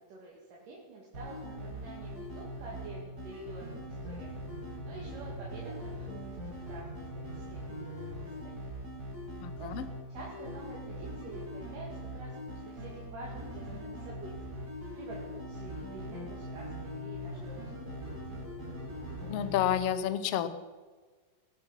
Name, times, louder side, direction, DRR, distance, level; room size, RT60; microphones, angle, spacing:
voice 1, 0.1-4.3 4.9-8.7 9.6-9.8 10.1-17.6 18.1-18.2, right 3 dB, 70° right, -4 dB, 3.9 m, -48 dB
sound 1, 1.1-19.8, equal, 25° right, 4.3 m, -41 dB
voice 2, 9.4-9.8 19.3-20.5, left 10 dB, 70° left, 11 dB, 1.5 m, -30 dB
19.0 x 11.5 x 5.8 m, 1.4 s
omnidirectional pair, 4.0 m